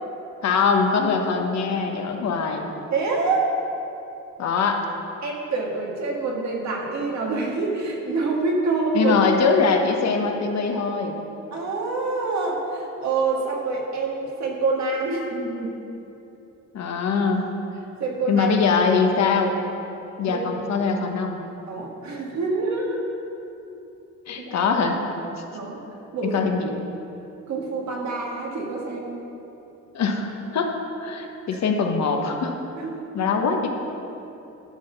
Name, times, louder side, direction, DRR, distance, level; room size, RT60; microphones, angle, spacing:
voice 1, 0.4-2.6 4.4-4.8 8.9-11.2 16.7-17.5 18.3-19.5 20.2-21.4 24.3-25.0 26.2-26.7 29.9-30.7 31.0-32.5 33.1-33.7, left 5 dB, 60° left, 3 dB, 1.0 m, -22 dB
voice 2, 2.9-3.5 5.2-9.2 11.5-15.8 18.0-18.5 20.3-20.4 21.7-23.0 24.4-24.5 25.5-25.8 26.1-26.3 27.5-29.2 32.7-33.0, right 3 dB, 65° right, -1 dB, 1.7 m, -26 dB
11.0 x 4.1 x 6.9 m, 2.9 s
cardioid pair, 90°, 30 cm